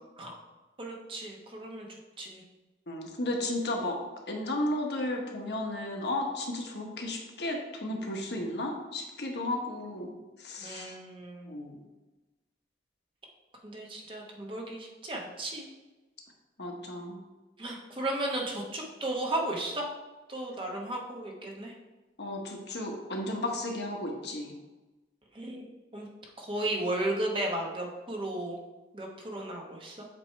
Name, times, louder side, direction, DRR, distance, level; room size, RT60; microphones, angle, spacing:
voice 1, 0.8-1.9 2.2-2.4 10.6-11.5 13.6-15.7 17.6-19.8 20.3-21.7 25.3-25.7 25.9-26.1 26.4-28.6 28.9-30.1, right 1 dB, 30° right, -1 dB, 0.9 m, -34 dB
voice 2, 2.9-4.0 4.3-11.0 11.5-11.8 16.6-17.2 22.2-24.5, left 1 dB, 70° left, 1 dB, 1.1 m, -34 dB
7.5 x 3.0 x 4.4 m, 1.1 s
head